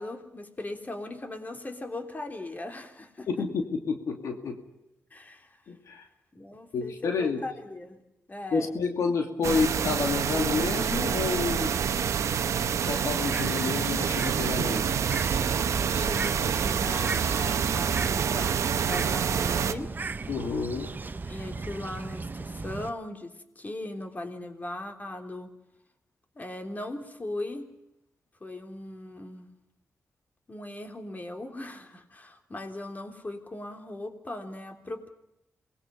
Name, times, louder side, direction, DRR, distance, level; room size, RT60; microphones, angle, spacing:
voice 1, 0.0-3.5 5.1-5.6 6.3-8.0 8.3-8.8 15.7-19.9 21.3-25.5 26.4-27.7 28.4-29.5 30.5-35.1, left 1 dB, 30° left, 5 dB, 3.5 m, -38 dB
voice 2, 3.3-4.6 5.7-6.1 6.7-7.4 8.5-11.8 12.8-14.8 20.3-20.9, left 4 dB, 85° left, 4 dB, 2.6 m, -29 dB
sound 1, 9.4-19.7, right 7 dB, 80° right, 1.0 m, -27 dB
Bird, 13.1-22.9, right 4 dB, 40° right, 1.0 m, -36 dB
27.5 x 20.5 x 5.3 m, 0.87 s
cardioid pair, 60°, 5 cm